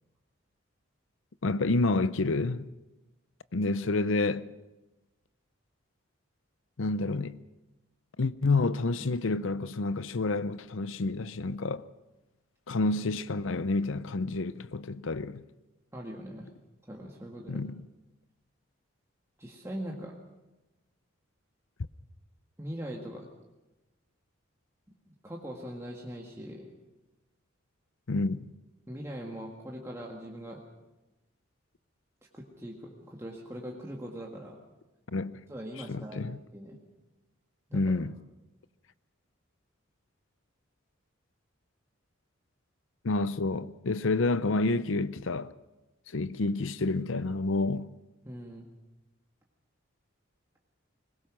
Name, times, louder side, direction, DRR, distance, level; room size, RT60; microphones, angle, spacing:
voice 1, 1.4-2.7 3.5-4.5 6.8-7.4 8.2-11.9 12.7-15.4 17.5-17.8 28.1-28.5 35.1-35.4 35.9-36.4 37.7-38.2 43.0-45.5 46.1-47.9, left 3 dB, 65° left, 0.7 m, -29 dB
voice 2, 15.9-16.5 16.9-17.6 19.4-20.1 22.6-23.3 25.1-26.7 28.9-30.6 32.3-34.6 35.5-36.8 37.7-37.8 48.2-48.8, equal, 15° right, 1.8 m, -41 dB
22.5 x 20.5 x 6.1 m
head